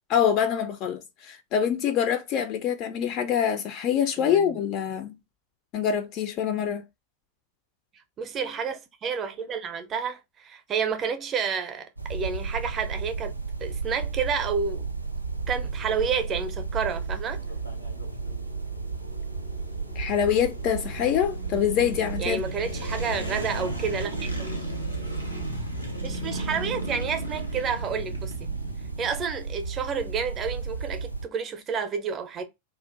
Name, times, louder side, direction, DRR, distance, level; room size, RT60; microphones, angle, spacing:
voice 1, 0.1-5.1 5.7-6.8 20.0-22.4, left 8 dB, 40° left, 0.3 m, -25 dB
voice 2, 4.2-4.6 8.2-14.9 15.5-17.4 22.2-24.6 26.0-28.5 29.0-32.4, right 6 dB, 25° right, 0.5 m, -30 dB
sound 1, 12.0-31.3, right 4 dB, 90° right, 0.3 m, -34 dB
sound 2, 14.1-29.2, equal, 90° left, 0.8 m, -39 dB
2.4 x 2.1 x 3.4 m
figure-of-eight pair, 90°, 0 cm